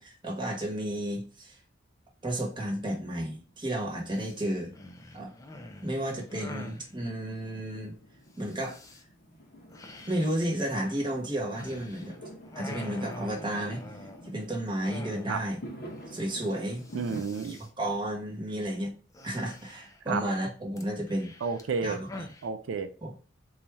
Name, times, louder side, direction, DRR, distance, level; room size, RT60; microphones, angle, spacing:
voice 1, 0.0-1.6 2.2-4.7 5.1-5.3 5.8-7.9 8.4-8.8 10.1-12.1 12.6-13.8 14.2-15.6 16.1-16.9 17.8-18.9 19.2-21.3 21.8-22.1 23.0-23.1, right 1 dB, 25° right, 1.1 m, -32 dB
Fireworks, 2.8-17.2, equal, 55° left, 0.8 m, -48 dB
sound 1, 4.1-4.4 4.7-6.9 8.4-9.0 9.7-12.2 12.4-14.4 14.8-15.6 15.9-16.0 16.2-16.5 16.8-17.7 19.1-20.1 20.8-22.5, left 1 dB, 15° left, 0.4 m, -45 dB
voice 2, 16.9-17.6 20.1-20.2 21.4-22.0 22.4-22.9, right 5 dB, 80° right, 0.4 m, -31 dB
4.0 x 2.4 x 3.0 m
head